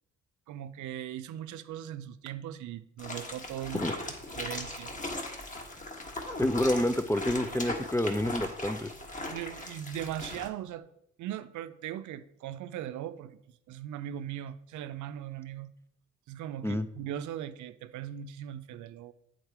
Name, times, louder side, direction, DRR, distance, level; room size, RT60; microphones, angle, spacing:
voice 1, 0.5-3.9 4.3-4.9 9.2-10.9 11.2-13.4 13.7-15.7 16.3-19.1, right 11 dB, 75° right, 0.5 m, -39 dB
sound 1, 3.0-10.5, left 2 dB, 25° left, 1.3 m, -39 dB
voice 2, 6.4-8.9 16.6-16.9, left 1 dB, 10° left, 0.3 m, -28 dB
8.0 x 3.9 x 4.6 m
cardioid pair, 90°, 30 cm